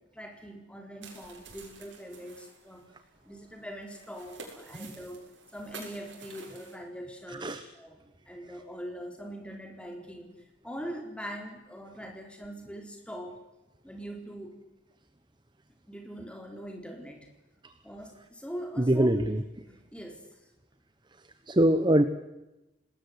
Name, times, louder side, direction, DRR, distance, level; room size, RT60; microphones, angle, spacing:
voice 1, 0.1-2.9 3.3-5.2 5.5-7.9 8.3-10.3 10.6-13.4 13.8-14.6 15.9-17.3 17.8-19.2 19.9-20.4, equal, 5° left, 3 dB, 4.2 m, -42 dB
sound 1, 1.0-6.8, right 4 dB, 80° right, 6.9 m, -49 dB
voice 2, 7.3-7.6 17.6-17.7 18.8-19.4 21.5-22.0, right 1 dB, 25° right, 11 dB, 1.1 m, -24 dB
26.5 x 20.0 x 8.2 m, 0.97 s
head